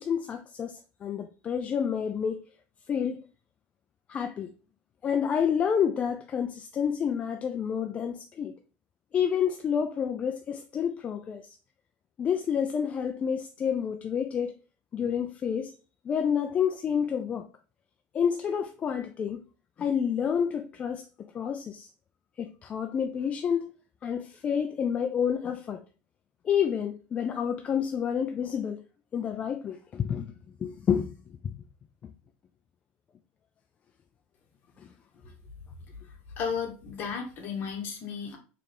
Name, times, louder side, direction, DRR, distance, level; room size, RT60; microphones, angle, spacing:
voice 1, 0.0-2.4 2.9-3.2 4.1-4.5 5.0-8.5 9.1-11.6 12.2-14.5 14.9-15.7 16.0-17.5 18.1-19.4 19.8-21.1 21.3-21.9 22.4-23.7 24.0-25.8 26.4-28.8 29.1-30.3 30.6-31.1 31.4-31.5 34.8-34.9, left 7 dB, 25° left, 0.3 m, -29 dB
voice 2, 36.4-38.4, left 6 dB, 40° left, 1.3 m, -33 dB
3.7 x 3.3 x 3.4 m
supercardioid pair, 135°, 5 cm